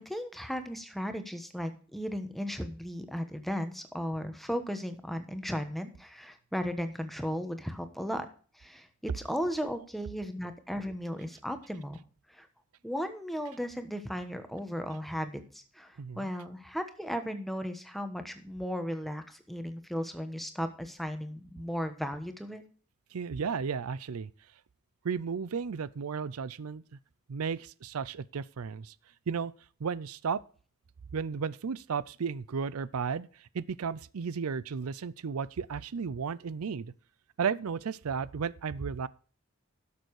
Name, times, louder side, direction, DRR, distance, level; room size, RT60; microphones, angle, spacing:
voice 1, 0.0-8.3 8.6-12.0 12.3-12.5 12.8-22.6, equal, ahead, 1.1 m, -36 dB
voice 2, 16.0-16.3 23.1-24.3 25.0-26.8 27.3-28.9 29.3-29.5 29.8-30.4 31.1-33.3 33.5-36.9 37.4-39.1, right 6 dB, 85° right, 0.5 m, -34 dB
12.0 x 6.8 x 4.8 m
head